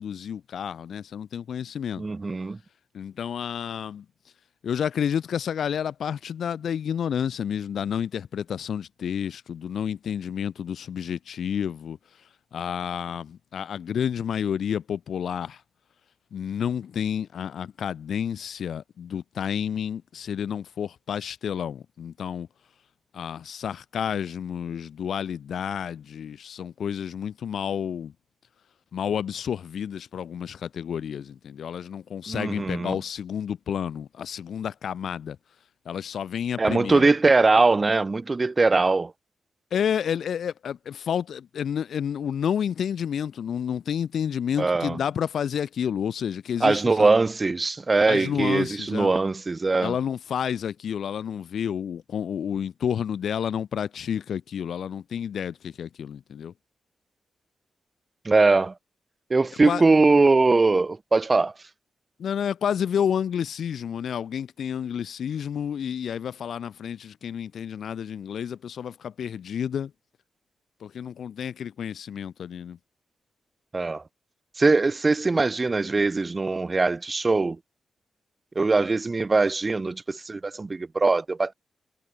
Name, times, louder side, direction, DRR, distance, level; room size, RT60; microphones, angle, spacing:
voice 1, 0.0-2.0 2.9-4.0 4.6-12.0 12.5-15.6 16.3-22.5 23.1-28.1 28.9-35.4 35.8-37.1 39.7-47.1 48.1-49.1 49.8-56.5 59.6-59.8 62.2-69.9 70.8-72.8, left 8 dB, 75° left, 1.7 m, -30 dB
voice 2, 2.0-2.6 32.3-33.0 36.6-39.1 44.6-45.0 46.6-50.0 58.3-58.7 59.3-61.5 73.7-74.0 74.6-77.6 78.6-81.5, right 3 dB, 30° right, 2.0 m, -21 dB
cardioid pair, 85°, 0 cm